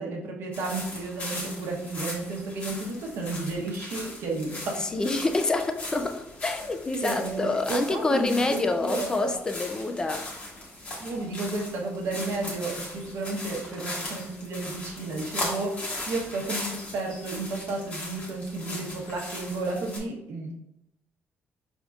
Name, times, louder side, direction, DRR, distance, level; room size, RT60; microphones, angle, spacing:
voice 1, 0.0-4.9 7.0-9.4 11.0-20.5, right 3 dB, 70° right, 0 dB, 0.9 m, -32 dB
sound 1, 0.5-20.0, left 1 dB, 35° left, 1.2 m, -38 dB
voice 2, 4.8-10.2, left 3 dB, 15° left, 6 dB, 0.4 m, -27 dB
5.2 x 3.5 x 2.4 m, 0.86 s
cardioid pair, 170°, 4 cm